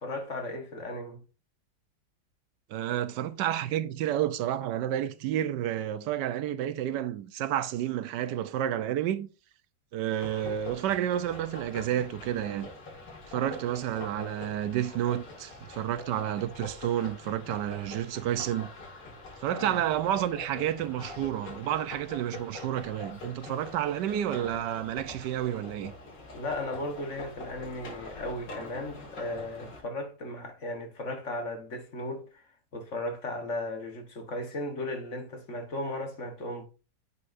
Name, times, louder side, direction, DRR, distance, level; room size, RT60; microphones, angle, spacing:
voice 1, 0.0-1.2 19.5-19.8 26.3-32.4 32.7-36.6, left 1 dB, 45° left, 1.5 m, -36 dB
voice 2, 2.7-9.3 9.9-12.7 13.3-18.7 19.4-25.9, right 11 dB, 80° right, 1.3 m, -30 dB
sound 1, 10.2-29.8, left 2 dB, 90° left, 2.7 m, -44 dB
9.7 x 5.6 x 2.6 m
omnidirectional pair, 1.8 m